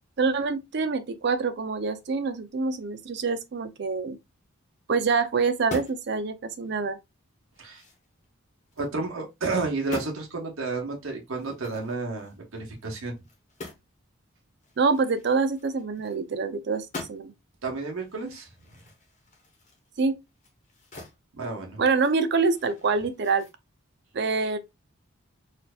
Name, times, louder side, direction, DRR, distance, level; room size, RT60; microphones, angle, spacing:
voice 1, 0.2-4.2 4.9-7.0 14.8-17.3 20.0-20.2 21.8-23.5 24.1-24.6, right 4 dB, 55° right, 0.4 m, -26 dB
sound 1, 5.5-6.1 6.6-6.7 7.2-8.9 9.3-9.5 9.8-10.2 11.3-13.9 14.2-14.3 14.6-16.4 16.7-17.4 17.9-21.2 21.5-23.5, left 2 dB, 35° left, 1.1 m, -44 dB
voice 2, 8.8-13.1 17.6-18.8 21.3-21.8, right 3 dB, 80° right, 1.0 m, -31 dB
4.3 x 2.7 x 2.3 m
head